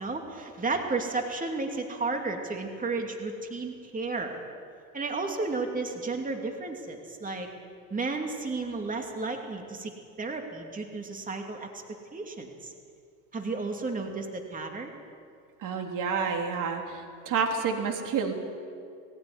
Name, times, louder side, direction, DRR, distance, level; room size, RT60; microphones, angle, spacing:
voice 1, 0.0-4.4 4.9-7.5 7.9-9.9 10.2-11.7 12.1-12.7 13.3-15.0, right 3 dB, 15° right, 3 dB, 2.8 m, -33 dB
voice 2, 15.6-18.3, right 5 dB, 40° right, 2 dB, 3.5 m, -29 dB
21.0 x 15.5 x 9.8 m, 2.3 s
hypercardioid pair, 105°, 49 cm